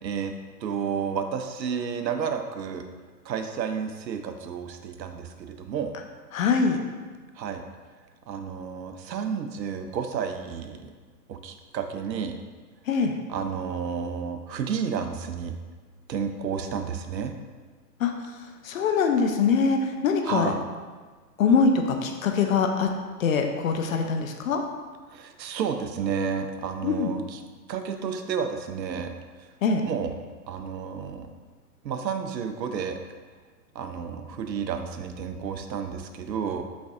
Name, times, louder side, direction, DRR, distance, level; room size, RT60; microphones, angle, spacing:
voice 1, 0.0-0.3 0.6-2.8 3.2-5.9 7.4-7.6 8.3-10.9 11.3-12.3 13.3-15.5 16.1-17.3 20.2-20.6 25.1-27.4 27.7-29.1 29.8-30.1 30.5-31.3 31.8-33.0 33.7-36.6, right 6 dB, 85° right, 7 dB, 0.6 m, -31 dB
voice 2, 6.3-6.8 12.9-13.2 18.0-18.1 18.6-20.5 21.4-22.9 23.2-24.6 26.8-27.1 29.6-29.8, left 5 dB, 55° left, 4 dB, 0.5 m, -23 dB
4.0 x 3.3 x 2.4 m, 1.4 s
hypercardioid pair, 125°, 50 cm